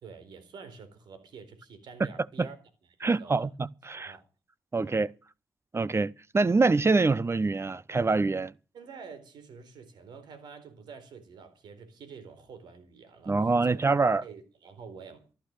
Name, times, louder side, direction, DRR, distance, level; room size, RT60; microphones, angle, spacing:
voice 1, 0.0-2.6 3.0-3.5 3.9-4.2 4.8-5.0 8.7-13.8 14.2-15.3, right 5 dB, 80° right, 4.0 m, -48 dB
voice 2, 3.0-4.2 4.7-5.1 5.7-8.5 13.3-14.2, right 3 dB, 35° right, 0.9 m, -25 dB
15.0 x 11.5 x 6.6 m
supercardioid pair, 50°, 7 cm